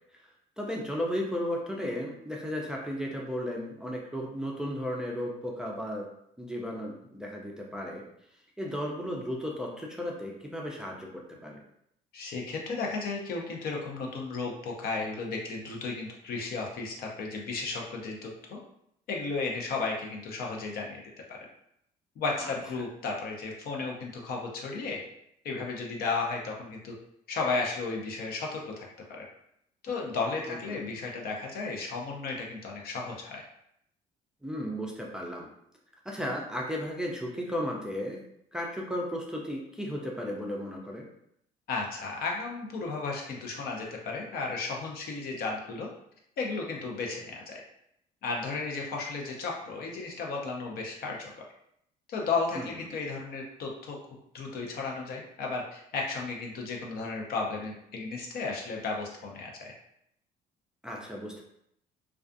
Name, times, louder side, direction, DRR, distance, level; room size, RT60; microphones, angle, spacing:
voice 1, 0.6-6.1 6.4-8.0 8.6-11.6 22.4-22.6 30.5-30.8 34.4-35.5 36.1-38.2 38.5-41.1 52.6-52.7 60.8-61.4, equal, 5° right, -1 dB, 0.4 m, -34 dB
voice 2, 12.1-18.6 19.1-21.0 21.3-21.4 22.2-25.0 25.4-26.9 27.3-29.3 29.8-33.4 41.7-45.9 46.4-47.6 48.2-51.3 52.1-54.0 54.3-59.7, left 4 dB, 65° left, 0 dB, 0.6 m, -34 dB
2.4 x 2.3 x 2.5 m, 0.74 s
cardioid pair, 110°, 17 cm